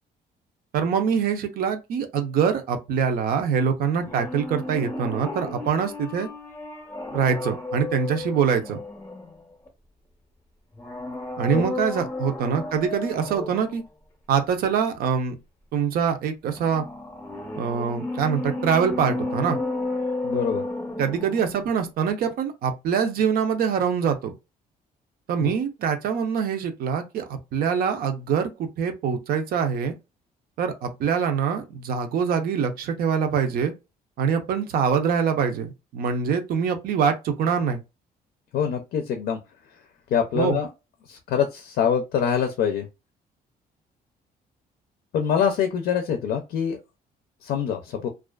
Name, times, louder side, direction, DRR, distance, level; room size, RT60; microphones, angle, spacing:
voice 1, 0.7-6.3 7.1-8.8 11.4-13.8 14.3-15.3 15.7-16.8 17.6-19.6 21.0-24.3 25.3-29.9 30.6-33.7 34.2-37.8 40.3-40.6, right 7 dB, 70° right, 0.6 m, -24 dB
sound 1, 3.9-9.7 10.7-13.8 16.5-21.7 22.0-22.1, left 2 dB, 15° left, 0.6 m, -33 dB
voice 2, 20.2-20.6 25.4-25.5 38.5-39.4 40.1-40.7 41.1-42.9 45.1-46.8 47.4-48.1, left 7 dB, 75° left, 0.5 m, -24 dB
2.4 x 2.4 x 2.2 m
cardioid pair, 135°, 16 cm